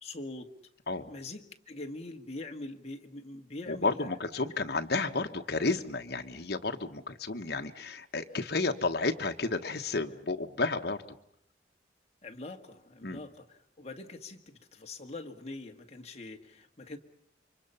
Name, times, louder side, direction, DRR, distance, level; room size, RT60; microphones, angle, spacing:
voice 1, 0.0-0.5 1.1-4.1 12.2-17.0, left 2 dB, 35° left, 4 dB, 1.8 m, -43 dB
voice 2, 3.7-11.0 13.0-13.2, left 3 dB, 60° left, 5 dB, 1.4 m, -32 dB
28.5 x 24.5 x 5.7 m, 0.70 s
head